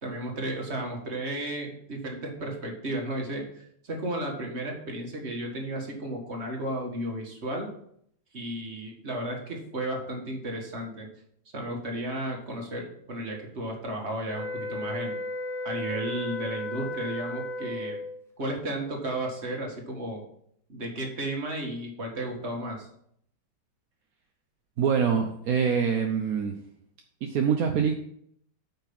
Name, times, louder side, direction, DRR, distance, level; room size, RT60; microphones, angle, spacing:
voice 1, 0.0-7.7 8.3-11.1 11.5-15.1 15.6-18.0 18.4-20.2 20.7-22.9, right 1 dB, 35° right, 1 dB, 2.0 m, -33 dB
sound 1, 14.2-18.2, left 1 dB, ahead, 1.5 m, -34 dB
voice 2, 24.8-26.6 27.2-27.9, right 7 dB, 60° right, 3 dB, 1.0 m, -25 dB
9.0 x 5.9 x 5.4 m, 0.69 s
omnidirectional pair, 2.2 m